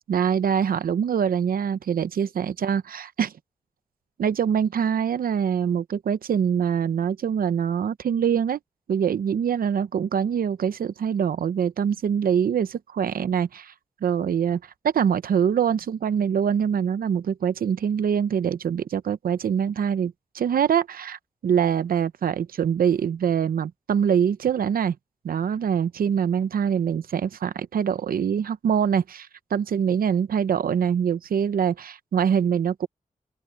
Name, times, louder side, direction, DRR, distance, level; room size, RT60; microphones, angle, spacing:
voice 1, 0.1-3.3 4.2-8.6 8.9-13.7 14.0-25.0 25.2-32.9, right 8 dB, 90° right, 0.7 m, -24 dB
open air
cardioid pair, 70°, 15 cm